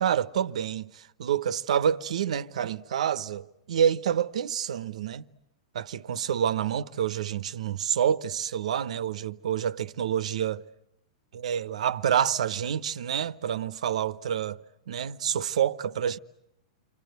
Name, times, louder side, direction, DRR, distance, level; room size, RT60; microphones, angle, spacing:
voice 1, 0.0-5.2 5.7-10.6 11.3-14.6 14.9-16.2, right 9 dB, 75° right, 1.1 m, -28 dB
29.5 x 24.5 x 8.1 m
hypercardioid pair, 135°, 4 cm